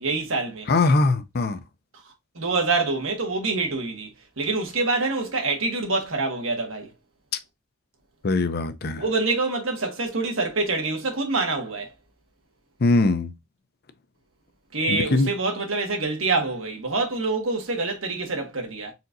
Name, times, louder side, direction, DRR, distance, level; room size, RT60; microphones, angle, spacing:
voice 1, 0.0-0.7 2.3-4.1 4.4-6.9 9.0-11.9 14.7-18.9, right 3 dB, 90° right, 1.6 m, -26 dB
voice 2, 0.7-1.6 8.2-9.0 12.8-13.3 14.9-15.3, left 3 dB, 50° left, 0.6 m, -21 dB
4.3 x 3.7 x 2.6 m
head